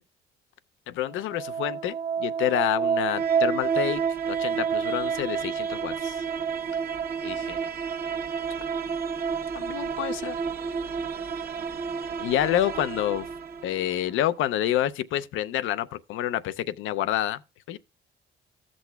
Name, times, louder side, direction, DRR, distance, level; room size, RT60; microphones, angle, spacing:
voice 1, 0.9-4.0 4.3-6.2 7.2-7.7 9.5-10.3 12.2-13.3 13.6-17.4 17.7-17.8, left 12 dB, 85° left, 0.5 m, -28 dB
sound 1, 1.1-14.1, right 6 dB, 50° right, 1.0 m, -29 dB
15.0 x 6.2 x 2.3 m
cardioid pair, 90°, 20 cm